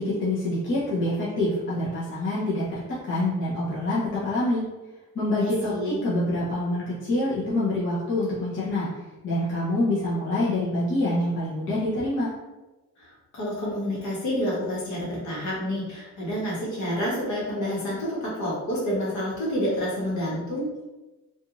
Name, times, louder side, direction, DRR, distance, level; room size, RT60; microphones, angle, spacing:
voice 1, 0.0-4.6 5.1-8.9 9.2-12.3, left 1 dB, 40° left, -9 dB, 0.7 m, -26 dB
voice 2, 5.4-6.0 13.0-20.7, equal, 60° left, -5 dB, 1.2 m, -29 dB
2.9 x 2.5 x 2.5 m, 1.1 s
cardioid pair, 160°, 33 cm